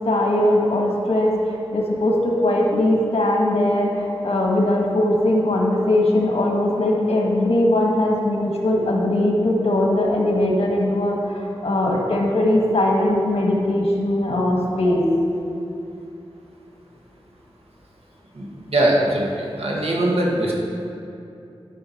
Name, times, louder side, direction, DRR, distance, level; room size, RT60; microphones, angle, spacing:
voice 1, 0.0-15.0, left 1 dB, 85° left, -1 dB, 1.4 m, -20 dB
voice 2, 18.7-19.3 19.6-20.5, right 1 dB, 80° right, -3 dB, 1.6 m, -20 dB
11.5 x 5.9 x 4.2 m, 2.8 s
wide cardioid pair, 90°, 10 cm